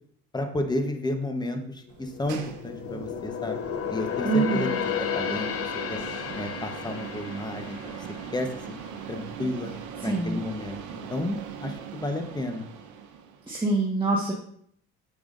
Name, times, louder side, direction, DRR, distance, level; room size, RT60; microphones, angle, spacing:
voice 1, 0.3-3.6 3.9-4.7 5.0-5.5 5.9-6.0 6.3-8.0 8.3-8.8 9.1-9.7 10.0-12.6, left 1 dB, 15° left, 5 dB, 1.1 m, -32 dB
sound 1, 1.9-9.4 9.8-10.0 10.6-11.3 11.6-11.7, left 9 dB, 50° left, 0.8 m, -33 dB
sound 2, 1.9-13.5, right 8 dB, 70° right, 1.0 m, -40 dB
voice 2, 4.2-4.8 10.0-10.4 13.5-14.3, right 3 dB, 15° right, -3 dB, 1.5 m, -25 dB
7.3 x 6.9 x 2.6 m, 0.65 s
supercardioid pair, 80°, 31 cm